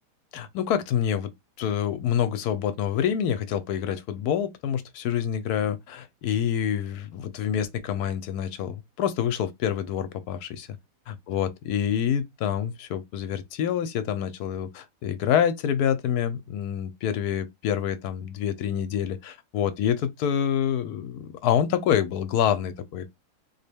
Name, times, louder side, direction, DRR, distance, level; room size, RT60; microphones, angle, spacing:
voice 1, 0.3-1.3 1.6-10.8 11.1-23.1, left 9 dB, 75° left, 1.1 m, -27 dB
4.0 x 2.1 x 3.4 m
omnidirectional pair, 1.7 m